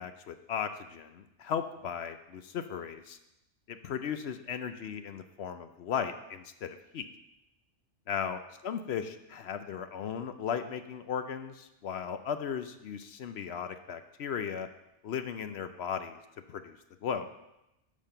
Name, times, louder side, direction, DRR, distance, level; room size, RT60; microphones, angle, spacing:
voice 1, 0.0-3.2 3.7-7.1 8.1-14.7 15.0-16.2 16.5-17.3, left 7 dB, 65° left, 9 dB, 0.8 m, -36 dB
10.0 x 5.4 x 6.7 m, 0.91 s
omnidirectional pair, 1.2 m